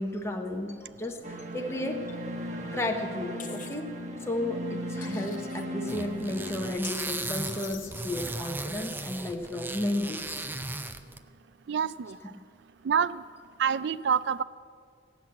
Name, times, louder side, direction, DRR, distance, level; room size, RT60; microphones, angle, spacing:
voice 1, 0.0-2.1 2.7-3.9 4.2-10.5 12.2-12.3, left 1 dB, 15° left, 2 dB, 0.8 m, -33 dB
sound 1, 1.2-6.7, equal, 40° right, 1.0 m, -37 dB
sound 2, 3.4-3.8 5.0-5.6 6.8-8.0, left 10 dB, 45° left, 0.6 m, -45 dB
sound 3, 5.9-11.2, right 2 dB, 10° right, 0.4 m, -36 dB
voice 2, 11.7-12.2 12.8-13.2 13.6-14.4, right 7 dB, 70° right, 17 dB, 0.4 m, -27 dB
16.5 x 6.0 x 8.4 m, 2.2 s
head